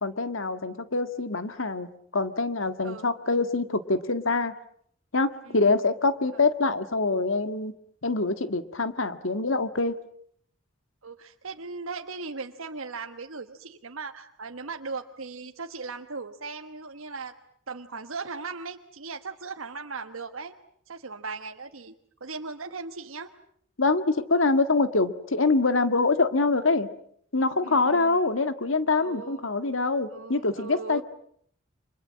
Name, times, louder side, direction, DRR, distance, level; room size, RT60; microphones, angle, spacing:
voice 1, 0.0-4.5 5.1-7.7 8.0-10.0 23.8-26.9 27.3-31.0, left 3 dB, 75° left, 10 dB, 1.7 m, -25 dB
voice 2, 11.0-17.4 17.7-20.5 20.9-21.9 22.2-23.3 27.6-28.2 29.0-29.4 30.1-31.0, right 4 dB, 90° right, 5 dB, 1.3 m, -38 dB
29.5 x 25.5 x 7.5 m, 0.66 s
head